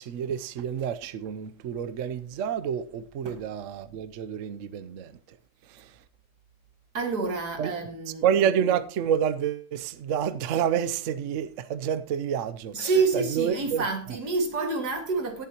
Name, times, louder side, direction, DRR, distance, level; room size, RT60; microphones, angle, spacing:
voice 1, 0.0-5.4 5.6-6.0 7.6-7.7 8.2-13.8, right 8 dB, 60° right, 0.9 m, -29 dB
voice 2, 6.9-8.2 12.7-15.5, right 4 dB, 90° right, 2.6 m, -28 dB
18.5 x 7.4 x 2.9 m
omnidirectional pair, 1.7 m